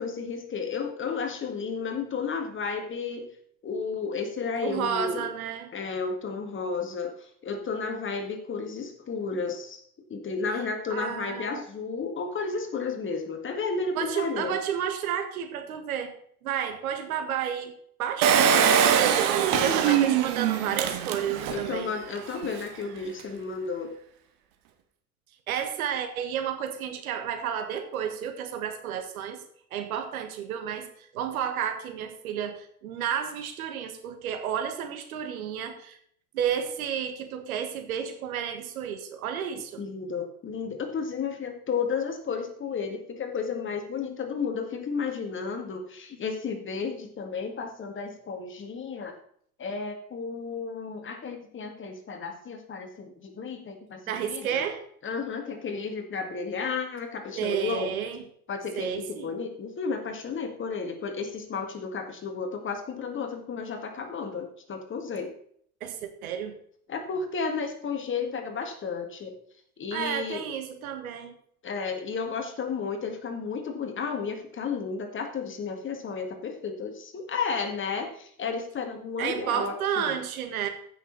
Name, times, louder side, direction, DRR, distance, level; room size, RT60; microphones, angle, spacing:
voice 1, 0.0-3.3 3.6-5.3 5.7-9.8 10.1-14.6 19.5-20.0 21.5-24.0 39.8-49.1 49.6-54.6 55.0-57.9 58.5-65.3 66.9-69.4 69.8-70.5 71.6-80.2, left 5 dB, 25° left, 5 dB, 2.0 m, -33 dB
voice 2, 4.6-5.7 10.9-11.6 14.0-16.2 16.4-17.7 18.0-21.9 25.5-29.4 29.7-36.0 36.3-39.8 54.1-54.8 57.4-58.2 58.8-59.3 65.8-66.5 69.9-71.3 79.2-80.7, right 8 dB, 65° right, 7 dB, 1.7 m, -31 dB
Engine, 18.2-21.7 22.2-22.3 22.4-22.5, right 8 dB, 50° right, 1.6 m, -22 dB
14.5 x 6.5 x 4.1 m, 0.63 s
figure-of-eight pair, 85°, 46 cm